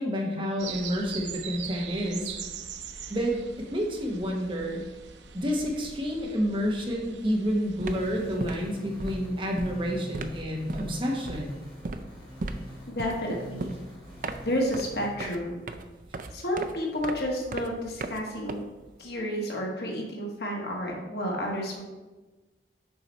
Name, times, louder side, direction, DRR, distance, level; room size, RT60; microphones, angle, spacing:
voice 1, 0.0-2.3 3.1-4.8 5.3-11.6, equal, 30° right, 0 dB, 1.0 m, -29 dB
sound 1, 0.6-8.4, right 7 dB, 90° right, 0.7 m, -42 dB
sound 2, 7.2-7.4 7.7-19.1, right 2 dB, 45° right, 0.4 m, -38 dB
sound 3, 7.8-15.1, equal, 25° left, 2.0 m, -46 dB
voice 2, 12.9-13.8 14.4-15.6 16.3-18.6 19.0-21.8, equal, 65° left, -1 dB, 1.6 m, -31 dB
7.1 x 4.9 x 4.1 m, 1.2 s
head